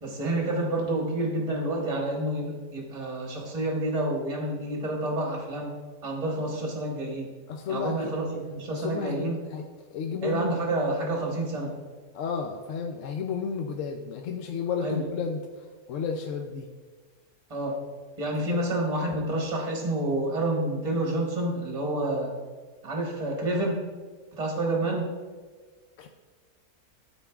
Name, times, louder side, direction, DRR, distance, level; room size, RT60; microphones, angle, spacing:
voice 1, 0.0-5.7 6.0-7.3 7.7-9.4 10.2-11.8 14.8-15.0 17.5-17.8 18.2-22.3 22.8-23.8 24.4-25.1, right 1 dB, 25° right, -1 dB, 1.2 m, -29 dB
voice 2, 7.5-8.1 8.7-9.6 9.9-10.6 12.1-16.7 18.4-18.6 26.0-26.1, left 6 dB, 70° left, 3 dB, 0.8 m, -32 dB
11.5 x 4.4 x 2.4 m, 1.4 s
omnidirectional pair, 1.7 m